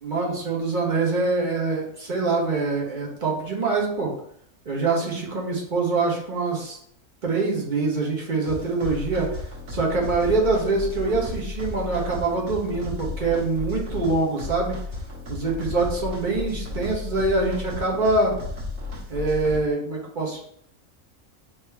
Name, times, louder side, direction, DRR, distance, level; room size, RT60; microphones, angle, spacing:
voice 1, 0.0-4.1 4.6-6.8 7.2-9.4 9.7-14.8 15.3-18.3 19.1-20.4, right 3 dB, 40° right, -2 dB, 1.1 m, -24 dB
sound 1, 8.5-19.6, left 3 dB, 60° right, 1.4 m, -34 dB
3.5 x 2.8 x 4.4 m, 0.65 s
omnidirectional pair, 1.4 m